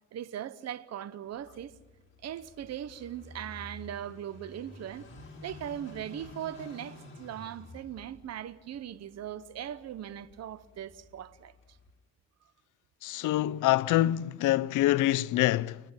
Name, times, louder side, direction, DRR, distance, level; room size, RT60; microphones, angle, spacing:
voice 1, 0.1-1.7 2.2-5.1 5.4-11.5, right 10 dB, 60° right, 0.9 m, -39 dB
Car passing by / Idling, 1.3-12.0, left 2 dB, 40° left, 5.5 m, -51 dB
voice 2, 13.0-15.8, left 15 dB, 85° left, 0.6 m, -25 dB
30.0 x 11.5 x 9.0 m
cardioid pair, 90°, 30 cm